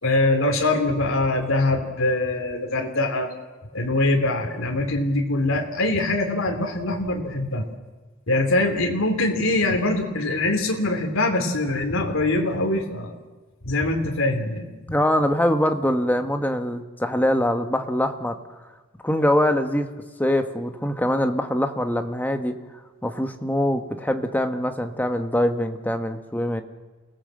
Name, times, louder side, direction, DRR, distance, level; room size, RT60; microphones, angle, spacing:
voice 1, 0.0-3.3 3.7-7.7 8.3-13.1 13.6-14.7, left 2 dB, 75° left, 2 dB, 2.9 m, -23 dB
voice 2, 14.9-18.4 19.0-19.9 20.2-22.6 23.0-26.6, left 1 dB, 10° left, 6 dB, 1.4 m, -23 dB
29.0 x 18.0 x 7.7 m, 1.2 s
head